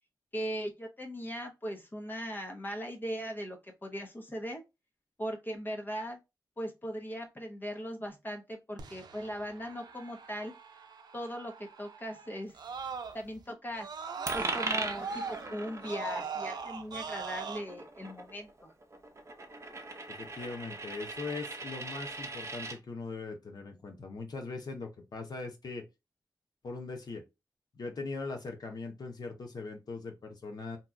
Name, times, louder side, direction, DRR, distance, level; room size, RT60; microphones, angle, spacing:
voice 1, 0.3-4.6 5.2-6.2 6.6-10.5 11.1-12.6 13.1-13.9 14.3-18.7, equal, 30° left, 0.8 m, -39 dB
Screaming, 8.8-13.4 13.7-17.6, right 5 dB, 90° right, 0.4 m, -41 dB
Coin (dropping), 14.3-22.8, right 3 dB, 40° right, 0.7 m, -40 dB
voice 2, 20.1-25.8 26.6-27.2 27.7-30.8, left 3 dB, 70° left, 0.8 m, -40 dB
2.9 x 2.3 x 3.6 m
wide cardioid pair, 80°, 7 cm